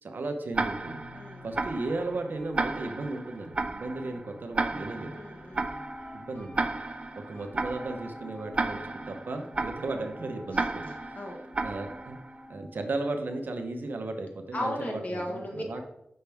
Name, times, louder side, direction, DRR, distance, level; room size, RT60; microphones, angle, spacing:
voice 1, 0.0-1.0 1.4-5.1 6.1-6.7 7.2-8.8 9.1-11.2 11.6-12.2 12.5-15.8, right 2 dB, 70° right, 5 dB, 0.9 m, -35 dB
Tick-tock, 0.5-12.4, right 3 dB, 35° right, 0.4 m, -34 dB
sound 1, 0.7-10.5, left 2 dB, 80° left, 2.0 m, -53 dB
voice 2, 1.1-1.5 5.1-5.8 10.5-10.6 11.1-11.4 14.5-15.8, left 1 dB, 45° left, 1 dB, 1.4 m, -36 dB
Wind instrument woodwind instrument, 5.6-13.2, left 1 dB, ahead, 1.3 m, -48 dB
6.6 x 5.6 x 3.5 m, 0.82 s
wide cardioid pair, 90°, 3 cm